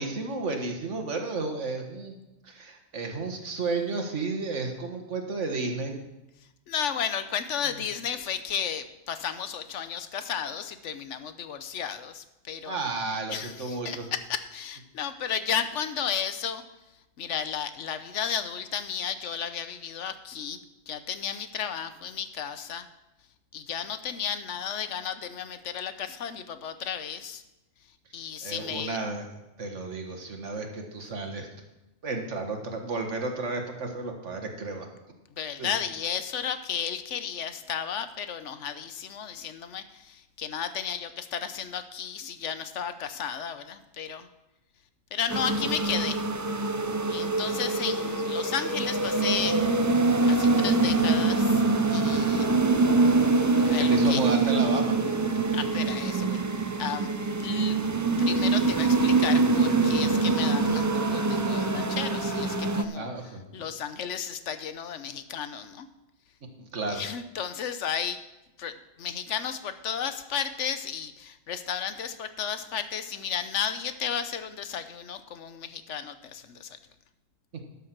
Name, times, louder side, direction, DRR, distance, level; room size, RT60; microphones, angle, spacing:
voice 1, 0.0-2.2 2.4-6.0 12.6-14.1 28.4-29.3 29.6-31.5 32.0-34.9 35.6-35.7 53.8-55.0 63.0-63.4 66.6-67.0, right 3 dB, 90° right, 4 dB, 1.8 m, -32 dB
voice 2, 6.7-12.8 13.3-16.6 17.2-20.6 20.9-22.9 23.5-27.4 28.1-29.0 35.3-44.3 45.1-46.2 47.1-49.6 50.3-51.6 51.9-52.5 53.5-54.2 55.5-57.1 57.4-57.8 58.2-65.9 66.9-68.2 68.6-76.8, left 8 dB, 90° left, 11 dB, 1.1 m, -33 dB
sound 1, 45.3-62.8, right 3 dB, 25° right, 0.4 m, -24 dB
12.0 x 7.2 x 6.0 m, 0.95 s
omnidirectional pair, 1.2 m